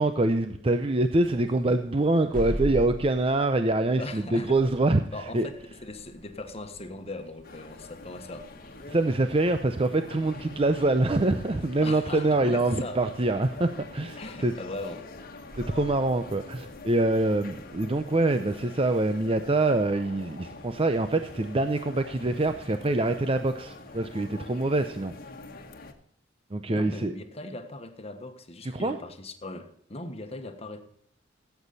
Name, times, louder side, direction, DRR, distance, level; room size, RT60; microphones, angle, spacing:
voice 1, 0.0-5.0 5.3-5.5 8.9-14.5 15.6-25.1 26.5-27.2 28.7-29.0, right 2 dB, 30° right, 0.6 m, -25 dB
sound 1, 0.8-18.1, equal, 45° right, 1.3 m, -44 dB
voice 2, 4.0-4.5 5.1-8.5 11.8-13.0 14.2-15.1 26.7-30.8, left 2 dB, 30° left, 1.3 m, -39 dB
sound 2, 7.4-25.9, left 3 dB, 50° left, 1.3 m, -45 dB
16.0 x 8.3 x 4.1 m
head